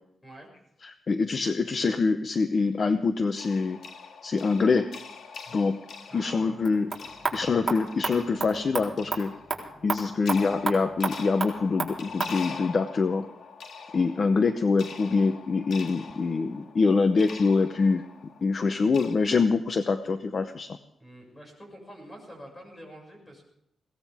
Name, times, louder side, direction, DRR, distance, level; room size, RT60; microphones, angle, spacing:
voice 1, 0.8-3.8 4.2-4.9 5.5-5.8 6.1-6.9 7.3-9.3 9.8-13.3 13.9-18.0 18.4-20.7, left 4 dB, 45° left, 9 dB, 0.8 m, -25 dB
sound 1, 3.4-19.1, left 5 dB, 80° left, 2.0 m, -44 dB
voice 2, 6.1-6.8 21.0-23.5, equal, 20° left, 1 dB, 6.5 m, -47 dB
sound 2, 6.5-12.4, right 3 dB, 20° right, 4.0 m, -33 dB
21.5 x 17.5 x 3.6 m, 0.79 s
wide cardioid pair, 135°, 0 cm